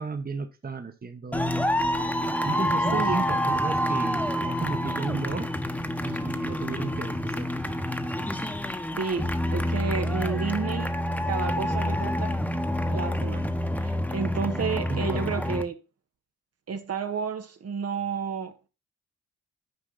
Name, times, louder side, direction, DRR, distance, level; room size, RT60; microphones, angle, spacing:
voice 1, 0.0-1.4 2.2-5.5 6.0-7.5 14.9-15.4, right 4 dB, 30° right, 1.4 m, -34 dB
sound 1, 1.3-15.6, equal, 5° left, 1.3 m, -27 dB
voice 2, 9.0-10.9 11.3-12.4 12.9-13.5 13.8-15.8 16.7-18.5, right 5 dB, 60° right, 1.6 m, -31 dB
9.8 x 5.4 x 4.1 m
cardioid pair, 70°, 29 cm